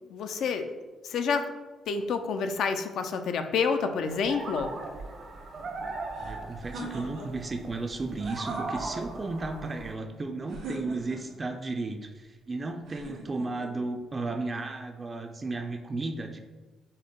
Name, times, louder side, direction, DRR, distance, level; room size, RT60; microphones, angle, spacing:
voice 1, 0.1-0.7 1.0-1.5 1.9-4.7, left 5 dB, 75° left, 7 dB, 0.4 m, -28 dB
sound 1, 4.0-9.9, right 3 dB, 60° right, 0.7 m, -39 dB
sound 2, 6.1-7.5 8.1-9.2 10.5-11.4 12.9-13.7, right 2 dB, 80° right, 1.2 m, -42 dB
voice 2, 6.2-16.4, right 3 dB, 30° right, 5 dB, 0.3 m, -34 dB
5.3 x 2.0 x 3.7 m, 1.2 s
cardioid pair, 90°, 0 cm